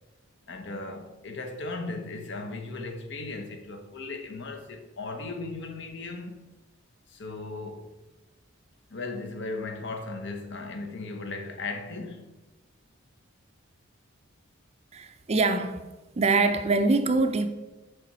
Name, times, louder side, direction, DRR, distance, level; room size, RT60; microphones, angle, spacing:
voice 1, 0.5-6.4 7.1-7.9 8.9-12.3, left 3 dB, 60° left, 0.8 m, -37 dB
voice 2, 14.9-15.8 16.2-17.5, right 3 dB, 30° right, 0.4 m, -24 dB
6.7 x 4.8 x 4.3 m
head